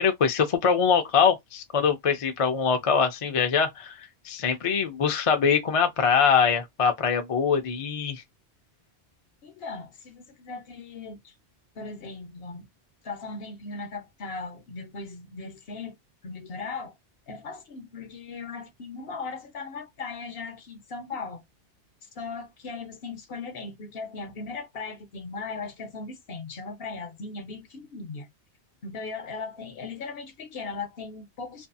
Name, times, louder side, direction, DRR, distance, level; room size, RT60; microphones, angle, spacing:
voice 1, 0.0-8.2, left 6 dB, 45° left, 0.5 m, -23 dB
voice 2, 9.4-11.3 11.8-12.7 13.0-16.0 16.2-17.0 17.3-21.4 22.2-28.3 28.8-31.7, left 4 dB, 60° left, 0.9 m, -38 dB
2.6 x 2.6 x 2.3 m
omnidirectional pair, 1.2 m